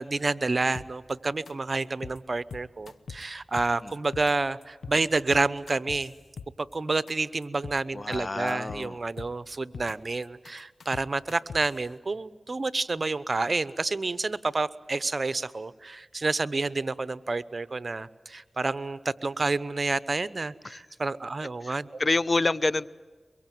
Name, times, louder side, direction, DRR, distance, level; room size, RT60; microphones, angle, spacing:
voice 1, 0.0-6.1 6.6-22.0, right 3 dB, 55° right, 16 dB, 0.9 m, -29 dB
sound 1, 0.7-1.1 1.5-1.6 1.8-2.2 2.5-3.2 3.6-4.3 4.6-5.0 5.3-6.7 7.1-7.2 7.4-7.8 8.1-8.8 9.2-9.9 10.2-11.8, left 5 dB, 85° left, 1.0 m, -41 dB
voice 2, 7.9-9.0 20.6-20.8 21.6-22.9, left 2 dB, 45° left, 18 dB, 0.8 m, -28 dB
23.5 x 23.5 x 9.3 m, 1.4 s
cardioid pair, 40°, 0 cm